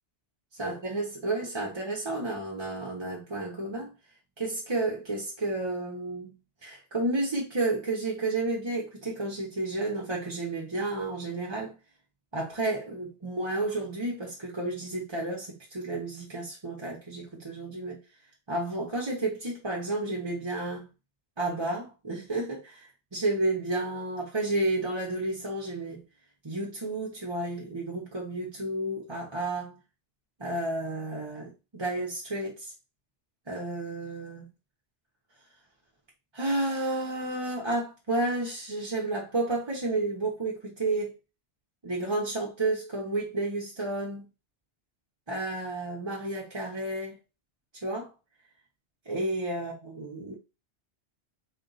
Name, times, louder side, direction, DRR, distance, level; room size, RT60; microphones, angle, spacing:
voice 1, 0.6-3.9 4.4-6.4 6.6-11.8 12.3-18.0 18.5-20.9 21.4-26.0 26.4-29.7 30.4-32.7 33.5-34.5 36.3-41.2 41.8-44.2 45.3-47.2 47.7-48.1 49.1-50.3, right 2 dB, 30° right, 0.7 m, -31 dB
4.2 x 2.2 x 3.9 m
omnidirectional pair, 1.2 m